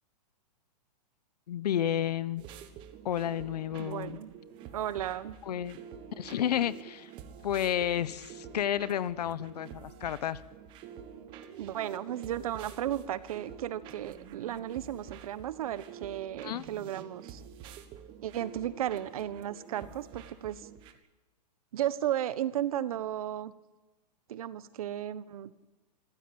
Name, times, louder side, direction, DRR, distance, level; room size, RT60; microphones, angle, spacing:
voice 1, 1.5-2.4 3.0-4.2 5.4-5.8 6.2-7.1 7.4-10.4 16.4-16.6, left 10 dB, 70° left, 16 dB, 1.2 m, -31 dB
sound 1, 2.4-20.9, right 8 dB, 25° right, 1.4 m, -48 dB
voice 2, 3.8-4.3 4.7-5.4 11.6-17.4 18.2-20.7 21.7-23.5 24.3-25.5, right 11 dB, 60° right, 16 dB, 1.3 m, -34 dB
25.5 x 15.5 x 8.8 m, 1.1 s
supercardioid pair, 170°, 21 cm